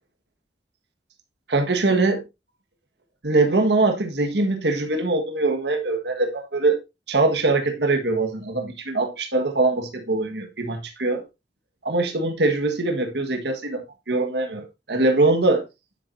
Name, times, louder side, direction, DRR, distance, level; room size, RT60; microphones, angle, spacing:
voice 1, 1.5-2.2 3.2-6.8 7.1-11.2 11.8-15.6, right 2 dB, 75° right, 1.6 m, -22 dB
9.9 x 7.5 x 2.7 m
head